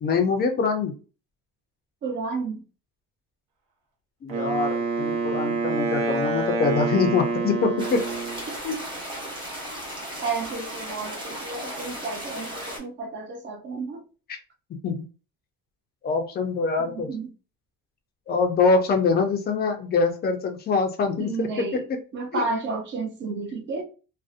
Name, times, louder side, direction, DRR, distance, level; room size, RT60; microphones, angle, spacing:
voice 1, 0.0-0.9 4.2-8.0 8.6-8.8 14.3-14.4 14.7-15.1 16.0-17.1 18.3-22.0 22.3-22.5, left 4 dB, 30° left, 0.4 m, -24 dB
voice 2, 2.0-2.6 8.5-8.6 10.2-14.0 16.8-17.3 21.2-21.8 22.1-23.8, right 4 dB, 35° right, 0.5 m, -31 dB
Wind instrument woodwind instrument, 4.3-8.5, right 3 dB, 80° right, 0.8 m, -27 dB
sound 1, 7.8-12.8, right 1 dB, 15° right, 0.9 m, -36 dB
2.6 x 2.0 x 2.4 m
cardioid pair, 165°, 34 cm